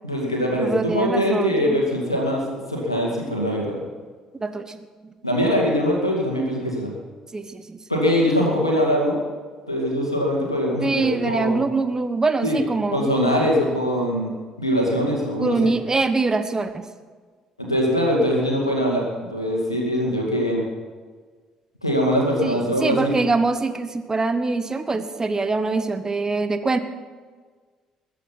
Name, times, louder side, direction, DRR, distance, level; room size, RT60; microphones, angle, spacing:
voice 1, 0.0-3.8 5.2-6.9 7.9-9.2 9.7-11.6 12.4-12.6 12.9-14.3 14.6-15.7 17.6-20.7 21.8-23.3, equal, 90° left, -1 dB, 2.2 m, -22 dB
voice 2, 0.6-1.8 4.4-5.1 7.3-7.8 10.8-13.1 15.3-16.8 22.4-26.8, right 3 dB, 25° right, 9 dB, 1.2 m, -24 dB
21.5 x 8.4 x 5.9 m, 1.5 s
figure-of-eight pair, 45°, 3 cm